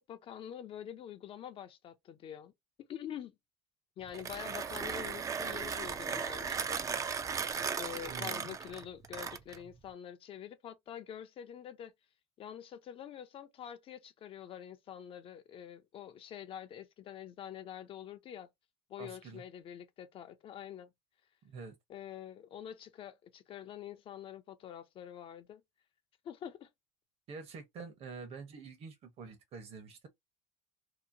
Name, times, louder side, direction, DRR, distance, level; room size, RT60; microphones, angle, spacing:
voice 1, 0.0-2.5 2.9-3.3 4.0-6.8 7.8-11.9 12.4-18.5 18.9-20.9 21.9-25.6 26.2-26.7, left 9 dB, 40° left, 0.4 m, -46 dB
Mechanisms, 4.0-9.7, right 6 dB, 25° right, 0.3 m, -37 dB
voice 2, 8.1-8.6 19.0-19.4 21.4-21.7 27.3-30.1, right 4 dB, 45° right, 0.9 m, -47 dB
2.8 x 2.0 x 2.5 m
cardioid pair, 125°, 14 cm